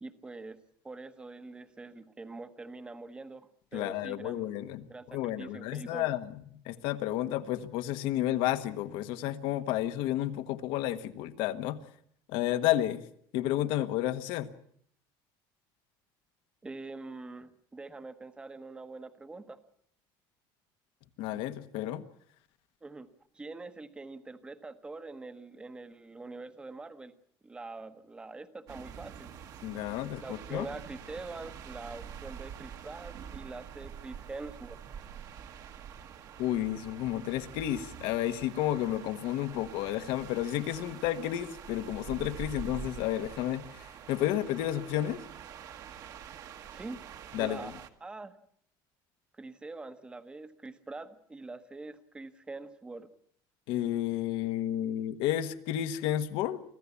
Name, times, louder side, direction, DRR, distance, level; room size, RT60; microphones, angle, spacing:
voice 1, 0.0-0.6 0.8-6.1 16.6-19.6 22.8-23.1 23.3-27.1 27.4-29.3 30.2-34.8 46.7-47.0 47.3-47.7 48.0-48.3 49.3-53.1, right 3 dB, 10° right, 10 dB, 1.1 m, -44 dB
voice 2, 3.7-4.8 5.1-6.2 6.6-11.8 12.3-13.0 13.3-14.5 21.2-22.0 29.6-30.2 30.5-30.6 36.4-45.2 47.3-47.7 53.7-56.6, left 13 dB, 65° left, 11 dB, 1.4 m, -31 dB
sound 1, 28.7-47.9, right 8 dB, 40° right, 1.5 m, -46 dB
25.0 x 15.5 x 8.4 m, 0.65 s
cardioid pair, 170°, 9 cm